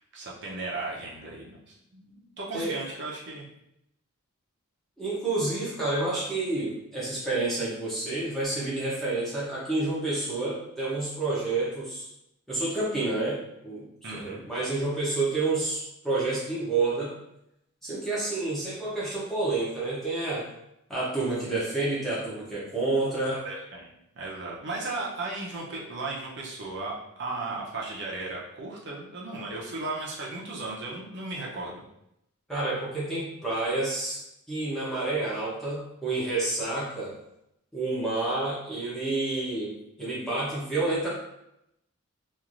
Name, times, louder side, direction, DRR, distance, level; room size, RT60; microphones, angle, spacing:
voice 1, 0.1-3.5 14.0-14.5 23.3-31.8, right 3 dB, 55° right, -4 dB, 0.7 m, -36 dB
voice 2, 5.0-12.1 12.5-17.1 17.8-20.5 20.9-23.4 32.5-34.2 34.5-37.2 37.7-41.1, right 2 dB, ahead, -9 dB, 0.7 m, -29 dB
3.0 x 2.5 x 2.5 m, 0.81 s
head